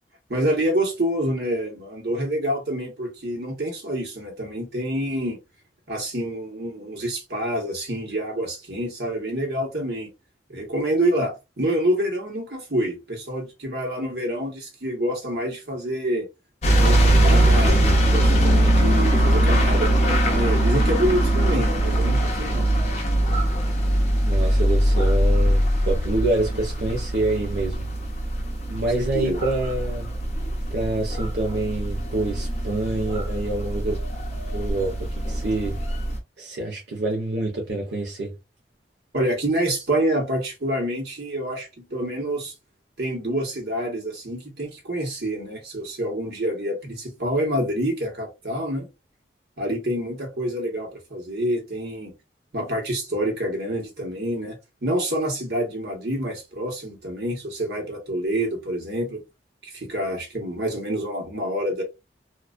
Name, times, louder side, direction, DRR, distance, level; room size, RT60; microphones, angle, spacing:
voice 1, 0.3-5.4 5.9-10.1 10.5-16.3 16.8-17.8 18.1-22.7 29.0-29.4 39.1-42.5 43.0-48.9 49.6-52.1 52.5-54.6 54.8-59.2 59.6-61.8, right 1 dB, 65° right, 1.0 m, -27 dB
sound 1, 16.6-36.2, right 1 dB, 35° left, 0.5 m, -21 dB
voice 2, 24.2-27.9 28.7-30.1 30.7-34.0 34.5-35.8 36.4-38.3, right 2 dB, 90° right, 0.7 m, -27 dB
2.3 x 2.2 x 2.4 m
head